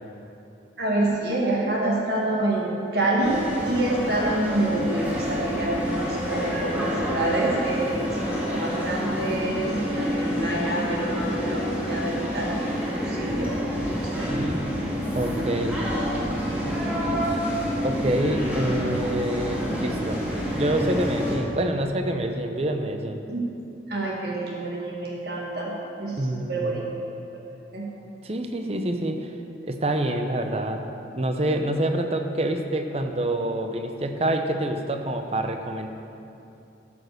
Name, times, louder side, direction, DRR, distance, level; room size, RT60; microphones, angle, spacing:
voice 1, 0.8-3.4 3.7-13.7 14.0-14.4 15.3-15.4 23.3-23.4 23.9-25.7 26.0-26.8 27.5-27.8, right 2 dB, 60° right, -3 dB, 1.7 m, -27 dB
sound 1, 3.2-21.4, equal, 10° right, 2.2 m, -28 dB
voice 2, 14.3-14.7 15.1-15.8 16.5-16.6 17.8-20.2 20.5-23.2 26.2-26.9 28.2-29.3 29.7-30.8 31.1-35.9, right 1 dB, 35° right, 6 dB, 0.8 m, -27 dB
13.5 x 6.8 x 6.7 m, 2.8 s
head